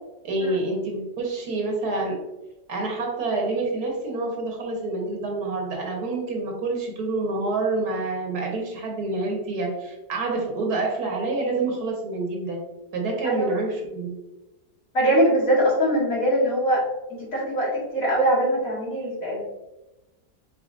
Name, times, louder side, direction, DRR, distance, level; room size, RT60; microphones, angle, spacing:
voice 1, 0.2-2.2 2.7-12.6 12.9-14.1, right 3 dB, 65° right, 0 dB, 1.5 m, -27 dB
voice 2, 13.2-13.6 14.9-16.8 17.1-19.4, right 1 dB, 55° left, -6 dB, 2.2 m, -22 dB
5.1 x 3.9 x 2.5 m, 1.0 s
omnidirectional pair, 1.8 m